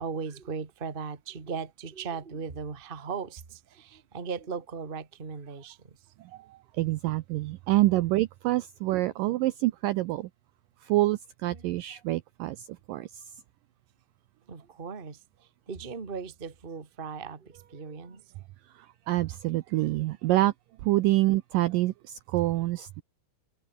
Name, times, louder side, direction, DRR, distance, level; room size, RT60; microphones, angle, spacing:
voice 1, 0.0-6.0 9.0-9.1 11.5-12.0 14.5-18.5 19.7-19.9, right 5 dB, 30° right, 1.0 m, -38 dB
voice 2, 6.8-10.3 10.9-13.1 19.1-20.5 20.8-23.0, right 17 dB, 80° right, 2.0 m, -26 dB
omnidirectional pair, 4.6 m